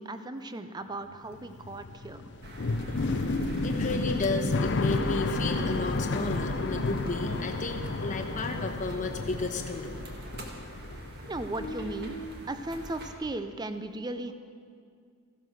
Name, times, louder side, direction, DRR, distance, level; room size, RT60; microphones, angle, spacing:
voice 1, 0.0-2.2 11.2-12.2 12.5-14.3, right 2 dB, 20° right, 10 dB, 0.5 m, -36 dB
sound 1, 1.1-11.3 11.5-12.4, left 3 dB, 50° left, 0.6 m, -32 dB
sound 2, 2.4-13.1, equal, 45° right, 1.7 m, -42 dB
voice 2, 3.6-9.9, left 2 dB, 35° left, 2 dB, 1.1 m, -33 dB
15.0 x 11.0 x 6.4 m, 2.2 s
head